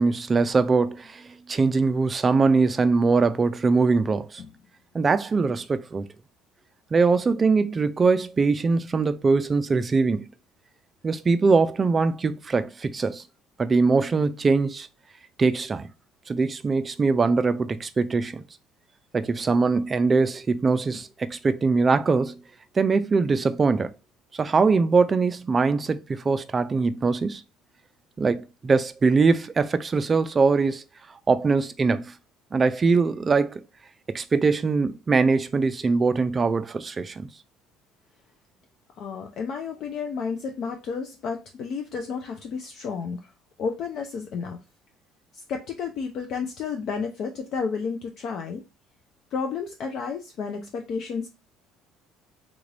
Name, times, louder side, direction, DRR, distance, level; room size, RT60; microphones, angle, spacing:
voice 1, 0.0-4.4 4.9-6.0 6.9-10.3 11.0-13.2 13.6-14.9 15.4-15.9 16.3-18.4 19.1-22.4 22.8-23.9 24.3-27.4 28.2-30.8 31.3-32.1 32.5-33.6 34.1-37.3, right 4 dB, 25° right, 0.3 m, -22 dB
voice 2, 39.0-43.3 43.6-44.6 45.3-48.6 49.3-51.3, left 5 dB, 50° left, 0.5 m, -31 dB
3.6 x 2.5 x 3.3 m
cardioid pair, 135°, 0 cm